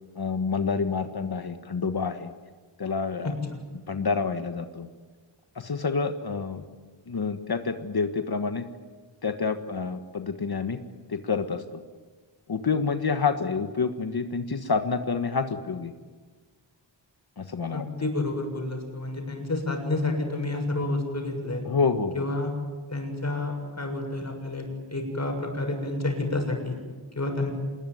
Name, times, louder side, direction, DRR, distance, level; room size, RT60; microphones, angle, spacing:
voice 1, 0.2-2.3 2.8-3.3 3.9-4.9 5.5-6.6 7.1-8.6 9.2-10.8 11.1-11.8 12.5-15.9 17.4-17.9 21.6-22.3, left 5 dB, 55° left, 7 dB, 1.5 m, -28 dB
voice 2, 3.2-3.6 17.7-21.6 22.1-22.5 22.9-26.8 27.2-27.5, left 2 dB, 35° left, 3 dB, 7.1 m, -29 dB
27.0 x 20.5 x 9.4 m, 1.4 s
wide cardioid pair, 105°, 46 cm